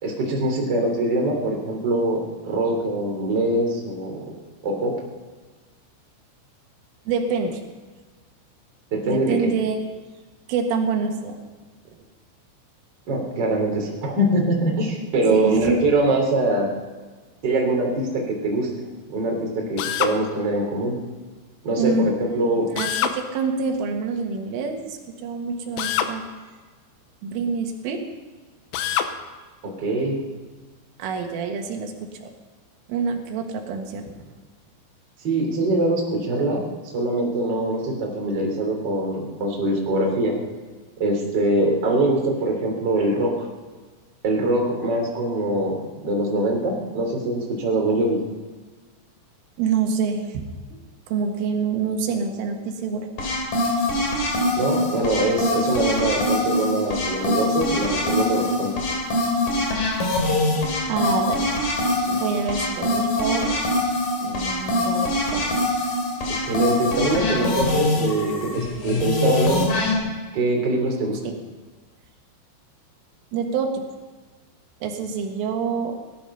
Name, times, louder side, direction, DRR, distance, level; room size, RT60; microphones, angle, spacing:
voice 1, 0.0-4.2 4.6-4.9 8.9-9.5 13.1-16.7 17.4-21.0 21.6-21.9 22.2-22.7 29.6-30.2 35.2-36.6 36.9-40.4 41.0-43.5 44.2-48.2 54.5-58.7 66.3-69.6 70.3-71.2, right 2 dB, 25° right, -1 dB, 3.1 m, -23 dB
voice 2, 7.1-7.6 9.1-9.8 10.5-11.4 15.3-15.8 21.8-22.1 22.5-26.2 27.2-28.0 31.0-31.9 32.2-32.3 32.9-34.2 49.6-50.4 50.7-50.8 51.1-53.1 53.7-53.8 60.9-61.5 62.0-63.5 64.2-65.5 73.3-73.8 74.8-75.9, right 5 dB, 90° right, 3 dB, 4.1 m, -26 dB
Drill, 19.8-20.2 22.8-23.2 25.8-26.2 28.7-29.1, left 10 dB, 85° left, 3.3 m, -24 dB
sound 1, 53.2-69.9, left 1 dB, 45° left, 4.6 m, -23 dB
18.0 x 13.0 x 5.6 m, 1.4 s
omnidirectional pair, 5.5 m